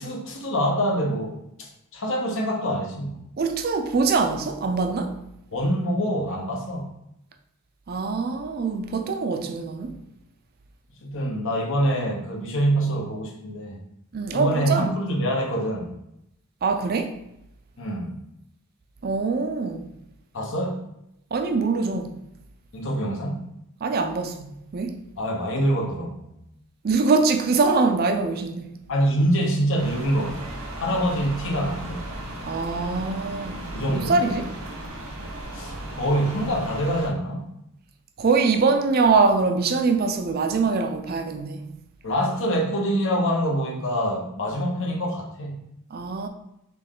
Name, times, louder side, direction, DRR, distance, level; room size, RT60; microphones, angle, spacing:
voice 1, 0.0-1.7 1.9-3.2 5.5-6.9 11.0-13.8 14.3-15.9 17.8-18.2 20.3-20.8 22.7-23.4 25.2-26.4 28.9-30.4 30.8-32.1 33.7-34.2 35.5-37.5 42.0-45.6, equal, 60° left, 1.0 m, -25 dB
voice 2, 3.4-5.2 7.9-9.9 14.1-14.9 16.6-17.2 19.0-19.9 21.3-22.1 23.8-25.0 26.8-28.8 32.5-34.5 38.2-41.7 45.9-46.3, right 4 dB, 45° right, 0.4 m, -23 dB
sound 1, 29.8-37.1, right 1 dB, 85° right, 1.0 m, -36 dB
4.2 x 3.1 x 3.7 m
head